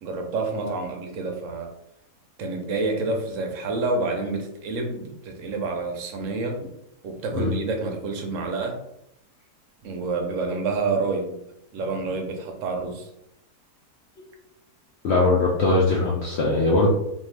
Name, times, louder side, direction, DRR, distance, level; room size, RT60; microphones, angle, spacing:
voice 1, 0.0-1.7 2.4-6.7 7.0-8.8 9.8-11.3 11.7-13.1, right 3 dB, 65° right, 3 dB, 0.8 m, -28 dB
voice 2, 15.0-16.9, left 2 dB, 70° left, -4 dB, 0.6 m, -20 dB
2.6 x 2.6 x 3.1 m, 0.81 s
omnidirectional pair, 1.7 m